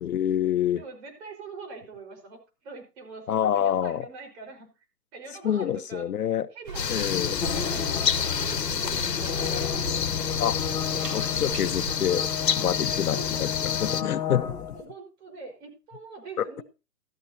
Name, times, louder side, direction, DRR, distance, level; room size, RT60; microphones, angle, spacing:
voice 1, 0.0-0.8 3.3-4.0 5.4-6.5 6.9-7.4 10.4-10.6 11.1-12.2 12.5-13.5 13.8-14.4 16.4-16.6, left 9 dB, 65° left, 12 dB, 0.9 m, -26 dB
voice 2, 0.7-4.9 5.1-6.1 6.5-7.3 7.6-10.2 13.1-13.5 14.7-16.6, right 4 dB, 40° right, 3 dB, 4.9 m, -43 dB
sound 1, 6.7-14.0, left 8 dB, 85° left, 1.2 m, -28 dB
sound 2, 6.7-11.9, right 3 dB, 80° right, 4.7 m, -38 dB
sound 3, 7.1-14.8, left 8 dB, 15° left, 2.0 m, -33 dB
13.5 x 13.0 x 2.8 m, 0.30 s
hypercardioid pair, 150°, 48 cm